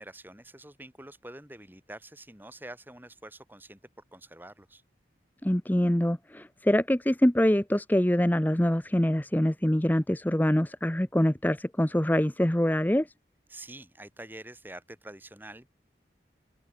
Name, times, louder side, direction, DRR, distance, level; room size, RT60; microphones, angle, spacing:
voice 1, 0.0-3.8 4.1-4.8 13.5-15.7, right 1 dB, 10° right, 6.2 m, -46 dB
voice 2, 5.4-13.1, equal, 10° left, 0.7 m, -24 dB
open air
head